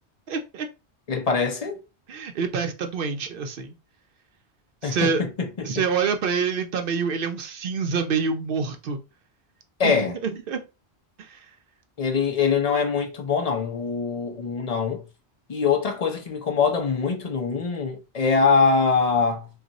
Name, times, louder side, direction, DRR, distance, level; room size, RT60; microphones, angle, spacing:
voice 1, 0.3-0.7 2.1-3.7 4.8-5.2 5.6-9.0 9.8-10.6 11.2-11.5, right 5 dB, 60° right, 0.7 m, -27 dB
voice 2, 1.1-1.8 4.8-5.8 9.8-10.2 12.0-15.0 15.5-19.5, left 5 dB, 40° left, 0.6 m, -23 dB
2.4 x 2.3 x 3.9 m
omnidirectional pair, 1.2 m